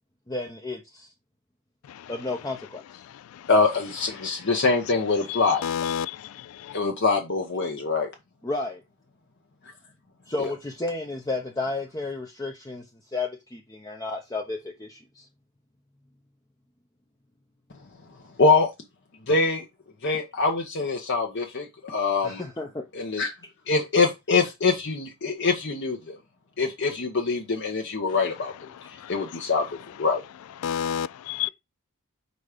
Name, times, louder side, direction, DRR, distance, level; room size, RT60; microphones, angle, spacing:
voice 1, 0.3-1.1 2.1-2.8 8.4-8.8 10.3-12.9 13.1-15.3 22.2-22.8, left 3 dB, 15° left, 0.6 m, -32 dB
voice 2, 3.5-5.6 6.7-8.1 10.4-10.5 18.4-18.7 19.3-19.6 20.0-22.4 22.9-23.3 23.7-26.2 26.6-28.5 29.1-29.7 30.0-30.2, left 4 dB, 55° left, 0.9 m, -24 dB
voice 3, 5.3-6.3 6.6-6.8 29.0-29.1 30.6-31.5, left 9 dB, 70° left, 0.3 m, -29 dB
4.8 x 4.1 x 4.9 m
head